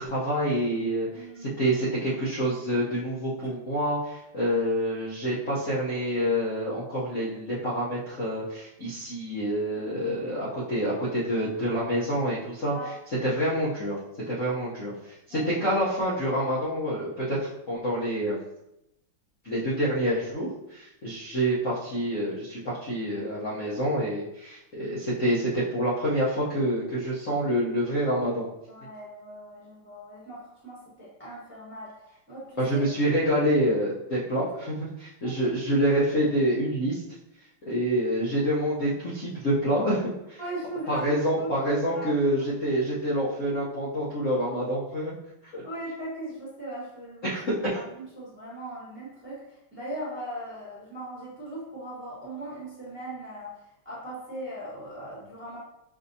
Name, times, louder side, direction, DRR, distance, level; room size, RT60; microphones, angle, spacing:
voice 1, 0.0-12.8 13.2-14.0 14.3-14.9 15.3-18.4 19.4-28.5 32.6-37.0 37.7-40.4 40.9-45.1 45.5-45.6 47.2-47.8, equal, 55° left, -9 dB, 0.9 m, -27 dB
voice 2, 1.1-1.6 12.7-12.9 15.3-15.6 28.7-31.9 32.3-32.8 33.1-33.2 35.2-35.3 40.4-41.5 41.9-42.5 45.6-47.3 47.9-53.5 53.8-55.6, right 1 dB, 5° right, -7 dB, 1.1 m, -39 dB
5.6 x 2.7 x 2.7 m, 0.84 s
omnidirectional pair, 2.3 m